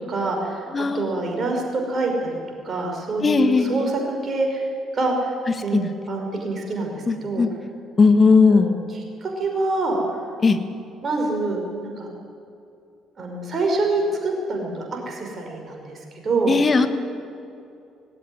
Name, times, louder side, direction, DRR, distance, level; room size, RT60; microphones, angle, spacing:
voice 1, 0.1-0.6 0.9-2.4 2.6-4.7 4.9-5.3 5.6-7.4 8.3-8.8 9.2-10.0 11.0-12.1 13.2-16.0 16.2-16.6, right 2 dB, 40° right, 2 dB, 5.6 m, -26 dB
voice 2, 0.7-1.2 3.2-3.9 5.7-5.9 7.1-7.5 8.0-8.7 10.4-10.6 16.5-16.9, left 4 dB, 35° left, 10 dB, 1.6 m, -17 dB
18.5 x 17.5 x 9.4 m, 2.7 s
figure-of-eight pair, 50°, 0 cm